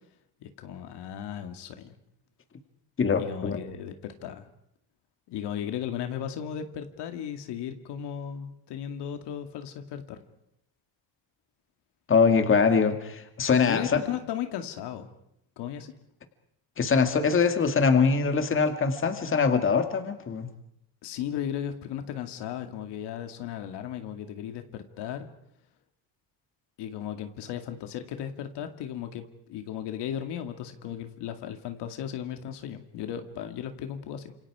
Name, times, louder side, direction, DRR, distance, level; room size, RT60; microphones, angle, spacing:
voice 1, 0.4-2.0 3.2-4.5 5.3-10.2 13.6-15.1 15.6-15.9 21.0-25.3 26.8-34.4, left 9 dB, 85° left, 7 dB, 2.3 m, -36 dB
voice 2, 3.0-3.6 12.1-14.0 16.8-20.5, left 5 dB, 30° left, 7 dB, 2.0 m, -23 dB
29.5 x 27.0 x 4.9 m, 0.78 s
cardioid pair, 150°, 40 cm